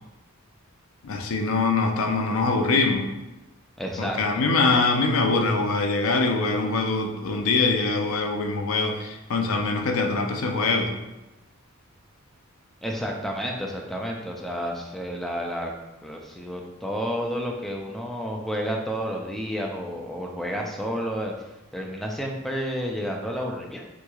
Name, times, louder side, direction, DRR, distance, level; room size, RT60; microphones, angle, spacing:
voice 1, 1.0-3.1 4.0-10.9, left 3 dB, 75° left, 3 dB, 0.4 m, -23 dB
voice 2, 3.8-4.4 12.8-15.7 16.0-21.3 21.7-23.8, equal, ahead, 0 dB, 0.3 m, -30 dB
3.5 x 3.0 x 2.3 m, 1.0 s
head